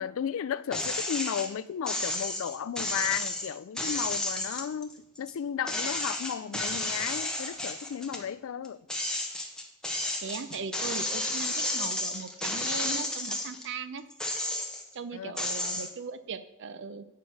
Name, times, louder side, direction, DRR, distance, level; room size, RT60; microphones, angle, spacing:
voice 1, 0.0-8.8 15.1-15.3, left 8 dB, 65° left, 0.3 m, -34 dB
sound 1, 0.7-1.5 1.9-5.3 5.7-8.2 8.6-13.7 14.1-14.9 15.4-15.9, left 1 dB, 5° left, 1.0 m, -32 dB
voice 2, 10.2-14.0 14.9-17.0, right 5 dB, 60° right, 0.6 m, -38 dB
8.2 x 4.7 x 6.3 m
head